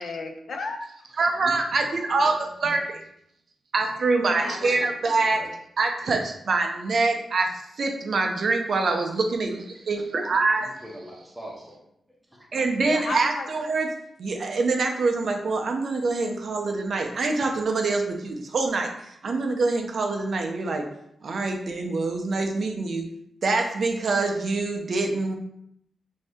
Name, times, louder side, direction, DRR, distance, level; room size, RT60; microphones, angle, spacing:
voice 1, 0.0-1.1 1.5-1.6 4.2-5.2 12.8-13.5, left 3 dB, 55° left, 4 dB, 0.4 m, -35 dB
voice 2, 1.2-2.8 3.7-5.4 5.8-7.5 7.8-10.7 12.5-13.9 14.2-20.8 21.2-23.1 23.4-25.4, right 3 dB, 50° right, 3 dB, 0.4 m, -25 dB
voice 3, 10.6-11.8, equal, 5° right, -3 dB, 0.7 m, -42 dB
2.7 x 2.6 x 3.4 m, 0.75 s
wide cardioid pair, 160°, 0 cm